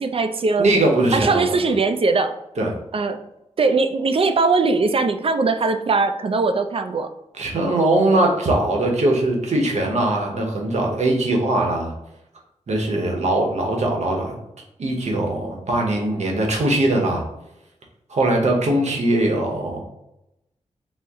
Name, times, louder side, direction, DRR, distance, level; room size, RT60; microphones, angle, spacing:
voice 1, 0.0-0.7 1.1-2.4 2.9-3.2 3.6-7.1, right 3 dB, 50° right, 8 dB, 0.4 m, -20 dB
voice 2, 0.6-1.5 2.6-2.7 7.4-11.9 12.7-14.4 14.8-17.2 18.1-19.8, right 1 dB, 65° right, 0 dB, 0.9 m, -21 dB
4.4 x 2.1 x 3.5 m, 0.86 s
wide cardioid pair, 90°, 13 cm